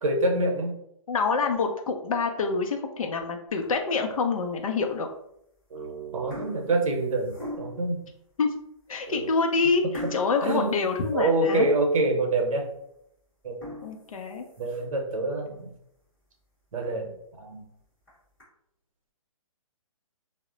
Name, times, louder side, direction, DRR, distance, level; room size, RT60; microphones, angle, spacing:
voice 1, 0.0-0.8 5.7-8.0 9.1-9.3 10.4-10.8 11.1-12.7 13.4-13.6 14.6-15.7 16.7-17.1 17.4-17.7, right 2 dB, 70° right, 2 dB, 0.8 m, -26 dB
voice 2, 1.1-5.1 8.4-8.5 8.9-9.8 10.1-11.7 13.8-14.4, left 4 dB, 75° left, 4 dB, 0.5 m, -26 dB
sound 1, 3.5-4.0 4.6-4.7 5.6-5.8 6.1-7.9 8.6-8.7 9.0-9.1 9.9-11.7 12.1-12.2 12.7-12.8 13.4-15.0 15.5-15.6 16.0-16.1 16.4-16.5 16.8-16.9 17.8-18.4, left 1 dB, 5° left, 1.0 m, -42 dB
2.1 x 2.0 x 3.7 m, 0.76 s
hypercardioid pair, 165°, 18 cm